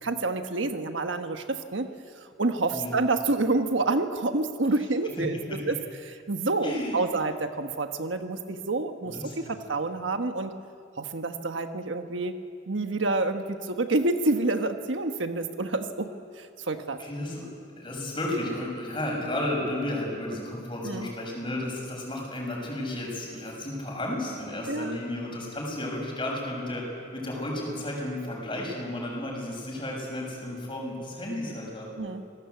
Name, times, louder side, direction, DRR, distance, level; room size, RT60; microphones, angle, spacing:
voice 1, 0.0-5.8 6.0-10.5 11.0-12.4 12.7-16.1 16.4-17.0 20.8-21.1 24.7-25.0 32.0-32.2, right 2 dB, 75° right, 7 dB, 1.3 m, -28 dB
voice 2, 6.6-7.1 9.0-9.5 17.0-17.4 17.8-26.8 27.1-31.9, left 1 dB, 25° left, -1 dB, 7.3 m, -33 dB
27.0 x 19.5 x 8.3 m, 2.3 s
head